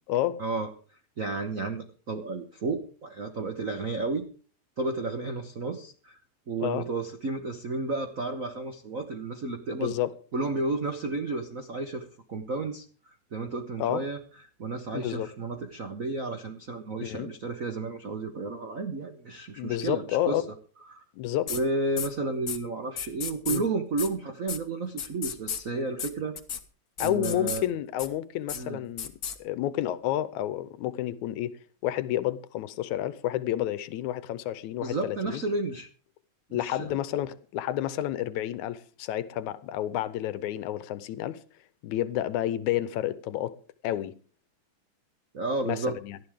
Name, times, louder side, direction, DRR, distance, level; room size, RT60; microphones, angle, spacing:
voice 1, 0.1-0.4 6.6-6.9 9.7-10.1 13.8-14.0 14.9-15.3 17.0-17.3 19.6-20.4 21.1-21.5 23.5-23.6 27.0-29.1 29.4-31.5 31.8-35.4 36.5-41.4 41.8-43.6 43.8-44.1 45.6-46.2, left 13 dB, 85° left, 2.2 m, -30 dB
voice 2, 1.2-4.2 4.8-6.2 6.5-9.9 10.3-14.2 14.6-20.4 20.9-21.0 21.5-26.4 27.0-27.6 28.5-28.8 34.8-35.9 36.5-37.0 45.3-45.9, right 3 dB, 75° right, 0.7 m, -32 dB
sound 1, 21.5-21.6 22.0-22.1 22.5-22.6 23.0-23.6 24.0-24.1 24.5-24.6 25.0-25.6 26.0-26.1 26.4-26.6 27.0-27.6 28.0-28.1 28.5-28.6 29.0-29.4, left 7 dB, 55° left, 1.0 m, -33 dB
19.0 x 12.5 x 3.6 m
omnidirectional pair, 3.3 m